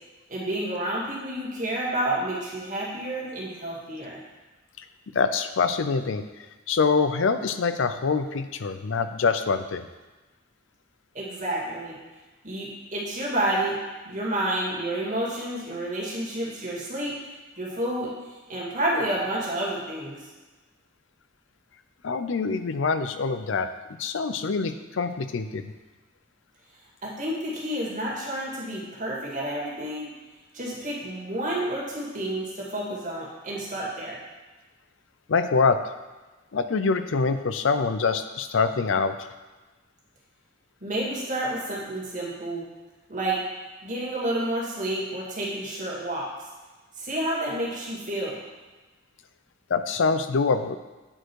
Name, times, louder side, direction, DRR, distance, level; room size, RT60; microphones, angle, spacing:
voice 1, 0.3-4.2 11.1-12.0 12.4-13.8 14.0-17.2 17.6-18.1 18.5-20.2 27.0-30.1 30.5-34.2 40.8-42.7 43.1-43.4 43.8-46.3 47.0-48.4, right 1 dB, 40° right, -4 dB, 2.1 m, -30 dB
voice 2, 5.1-6.2 6.7-9.9 22.0-23.7 24.0-25.7 35.3-35.9 36.5-39.3 49.7-50.8, left 4 dB, 75° left, 10 dB, 0.5 m, -25 dB
8.9 x 4.5 x 4.7 m, 1.2 s
head